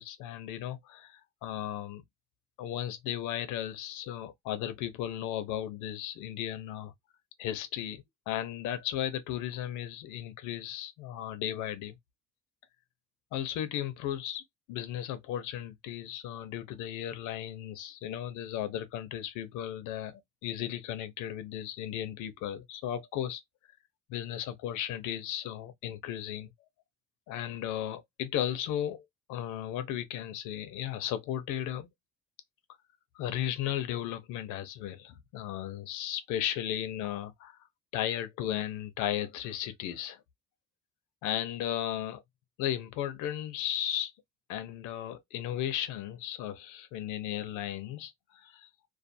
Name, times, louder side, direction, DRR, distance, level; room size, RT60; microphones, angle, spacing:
voice 1, 0.0-2.0 2.6-6.9 7.4-12.0 13.3-14.4 14.7-23.4 24.1-26.5 27.3-29.0 29.3-31.9 33.1-37.6 37.9-40.2 41.2-42.2 42.6-44.1 44.5-48.7, left 11 dB, 85° left, 0.6 m, -35 dB
2.4 x 2.3 x 2.6 m
cardioid pair, 165°, 30 cm